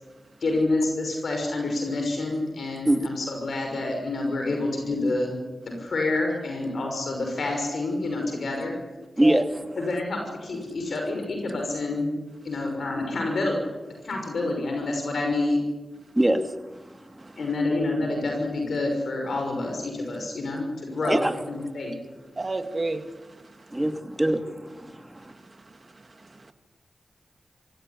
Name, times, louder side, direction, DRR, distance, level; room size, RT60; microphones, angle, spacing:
voice 1, 0.4-5.4 5.8-8.7 9.8-12.2 12.4-13.6 14.0-15.6 17.4-22.0, left 2 dB, 75° left, 2 dB, 5.9 m, -28 dB
voice 2, 9.2-9.7 16.2-16.6 16.9-17.0 21.1-21.3 23.7-25.3, right 1 dB, 15° right, 7 dB, 2.7 m, -23 dB
voice 3, 22.4-23.8 25.2-26.5, right 2 dB, 45° right, 7 dB, 2.6 m, -33 dB
24.5 x 16.5 x 9.9 m, 1.2 s
cardioid pair, 45°, 0 cm